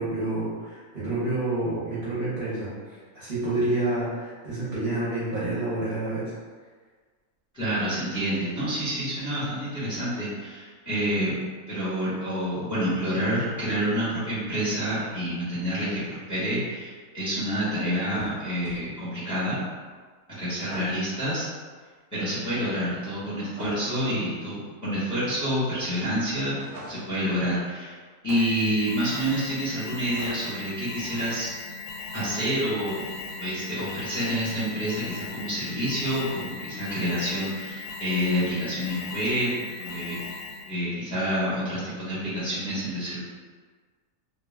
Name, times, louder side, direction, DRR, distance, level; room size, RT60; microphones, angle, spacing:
voice 1, 0.0-6.3, right 2 dB, 45° right, -11 dB, 0.8 m, -28 dB
voice 2, 7.5-11.3 11.7-19.6 20.4-21.5 22.1-26.6 26.9-27.9 28.2-31.5 32.1-33.1 33.4-39.5 39.8-40.2 40.6-43.2, equal, 15° left, -11 dB, 0.8 m, -28 dB
sound 1, 18.1-18.8 20.7-21.0 23.6-23.9 26.6-27.2, right 1 dB, 90° right, 1.1 m, -40 dB
Shatter, 28.3-28.9 30.2-30.7 32.1-32.7 34.4-35.1, right 1 dB, 25° right, 0.4 m, -45 dB
Alarm, 28.4-40.8, left 4 dB, 70° left, 0.9 m, -38 dB
2.3 x 2.2 x 3.2 m, 1.5 s
omnidirectional pair, 1.5 m